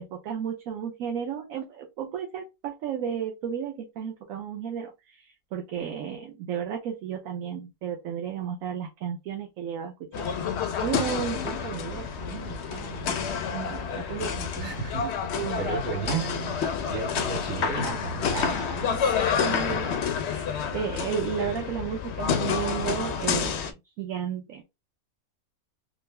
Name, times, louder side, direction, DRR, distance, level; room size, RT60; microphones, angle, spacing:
voice 1, 0.0-10.3 10.8-16.5 17.5-18.0 18.3-19.0 19.4-24.6, right 8 dB, 70° right, 1.1 m, -34 dB
sound 1, 10.1-23.7, left 7 dB, 65° left, 0.7 m, -29 dB
voice 2, 14.6-15.1 15.4-19.0, right 4 dB, 50° right, 2.0 m, -34 dB
3.8 x 2.0 x 3.2 m
omnidirectional pair, 1.6 m